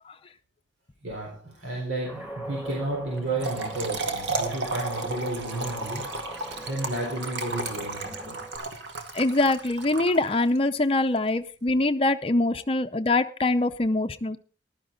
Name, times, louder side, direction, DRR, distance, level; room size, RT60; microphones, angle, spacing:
voice 1, 1.0-6.1 6.7-8.4, right 2 dB, 90° right, -1 dB, 4.0 m, -32 dB
Guitar, 2.0-8.6, right 1 dB, 10° right, 2.1 m, -41 dB
Trickle dribble / Fill (with liquid), 3.2-10.6, right 3 dB, 70° right, 2.0 m, -33 dB
voice 2, 9.1-14.4, left 2 dB, 30° left, 8 dB, 0.6 m, -24 dB
15.0 x 12.0 x 3.8 m, 0.35 s
head